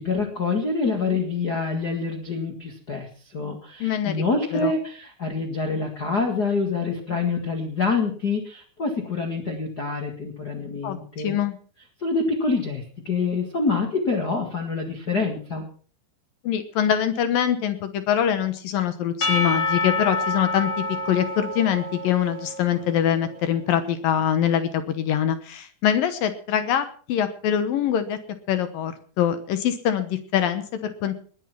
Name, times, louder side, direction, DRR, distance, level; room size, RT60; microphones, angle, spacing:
voice 1, 0.0-11.4 12.0-15.7, left 4 dB, 55° left, 3 dB, 1.1 m, -26 dB
voice 2, 3.8-4.2 4.5-4.7 10.8-11.6 16.4-28.2 28.5-31.1, left 9 dB, 70° left, 10 dB, 2.3 m, -24 dB
Percussion / Church bell, 19.2-23.2, left 2 dB, 35° left, 1.3 m, -28 dB
20.0 x 9.2 x 5.9 m, 0.44 s
omnidirectional pair, 5.2 m